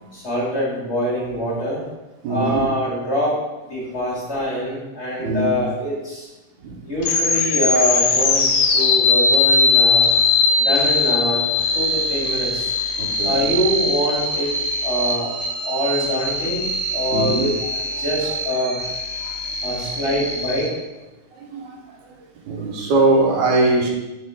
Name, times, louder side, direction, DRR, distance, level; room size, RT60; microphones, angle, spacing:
voice 1, 0.1-1.8 2.3-3.4 3.7-6.3 6.8-8.5 8.7-10.1 10.6-11.4 11.7-12.7 13.2-14.5 14.8-15.3 15.6-17.5 17.9-18.8 19.6-20.7, equal, 30° left, -5 dB, 1.3 m, -24 dB
voice 2, 2.2-2.7 5.2-5.6 6.6-6.8 11.7-11.8 13.0-13.4 17.1-17.5 18.0-18.4 19.2-19.3 20.2-20.3 21.3-22.2 22.5-23.9, right 2 dB, 75° right, 1 dB, 2.1 m, -22 dB
sound 1, 7.0-20.7, left 3 dB, 65° left, 1.7 m, -21 dB
5.5 x 4.0 x 6.0 m, 1.1 s
omnidirectional pair, 3.6 m